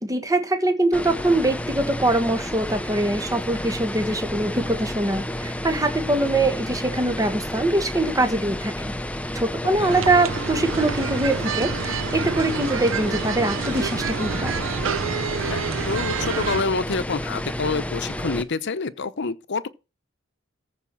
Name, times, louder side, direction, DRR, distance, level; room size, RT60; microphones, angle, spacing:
voice 1, 0.0-8.9 9.3-14.6, right 2 dB, 15° right, 1.5 m, -23 dB
sound 1, 0.9-18.4, left 1 dB, 5° left, 0.8 m, -31 dB
voice 2, 9.6-9.9 15.4-19.7, left 4 dB, 60° left, 0.8 m, -27 dB
sound 2, 9.9-16.6, right 6 dB, 70° right, 0.7 m, -28 dB
14.0 x 4.9 x 6.1 m
head